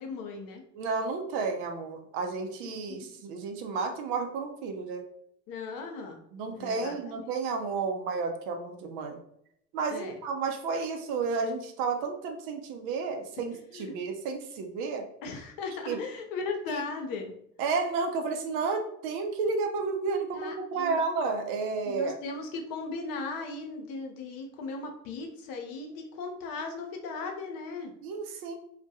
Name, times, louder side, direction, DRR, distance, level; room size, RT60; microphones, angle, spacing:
voice 1, 0.0-0.6 2.6-3.1 5.5-6.2 6.5-7.2 9.9-10.1 13.7-13.9 15.2-17.3 20.3-21.0 21.8-27.9, left 3 dB, 55° left, 3 dB, 0.6 m, -37 dB
voice 2, 0.7-5.0 6.3-9.2 9.7-15.0 15.9-16.0 16.7-16.8 17.6-22.2 28.0-28.5, right 4 dB, 65° right, 5 dB, 0.6 m, -31 dB
2.2 x 2.1 x 2.7 m, 0.73 s
hypercardioid pair, 65°, 42 cm